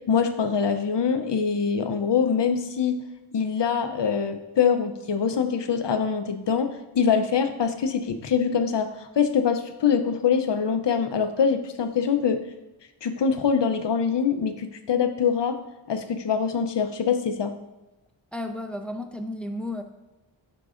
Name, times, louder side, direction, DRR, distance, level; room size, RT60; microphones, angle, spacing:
voice 1, 0.1-3.0 3.3-6.7 6.9-12.4 13.0-15.6 15.9-17.5, left 6 dB, 60° left, 8 dB, 0.7 m, -24 dB
voice 2, 18.3-19.8, left 1 dB, ahead, 6 dB, 0.5 m, -33 dB
11.0 x 3.9 x 2.5 m, 1.0 s
wide cardioid pair, 65°, 48 cm